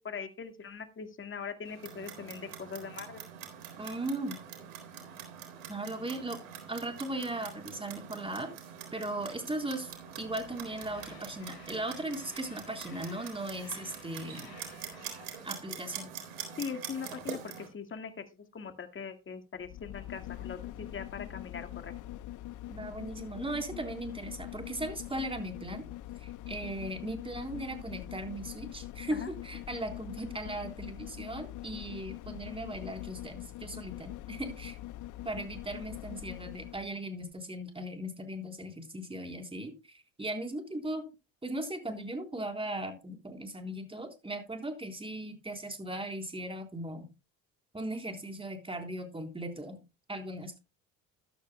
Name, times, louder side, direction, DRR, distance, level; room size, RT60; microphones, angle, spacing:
voice 1, 0.0-3.2 16.6-18.1 18.5-21.9 29.1-29.3, left 6 dB, 30° left, 6 dB, 1.9 m, -41 dB
Clock, 1.6-17.7, right 8 dB, 80° right, 3.9 m, -45 dB
voice 2, 3.8-4.4 5.7-6.4 6.7-8.5 8.9-9.9 10.2-14.6 15.4-16.1 22.7-25.9 26.2-34.8 35.2-41.0 41.4-47.1 47.7-49.8 50.1-50.6, right 1 dB, 15° right, 4 dB, 3.8 m, -38 dB
Train, 9.3-16.7, left 7 dB, 80° left, 5.5 m, -55 dB
sound 1, 19.5-36.9 37.3-37.4, left 14 dB, 50° left, 0.6 m, -43 dB
14.0 x 12.0 x 2.2 m, 0.28 s
hypercardioid pair, 70°, 38 cm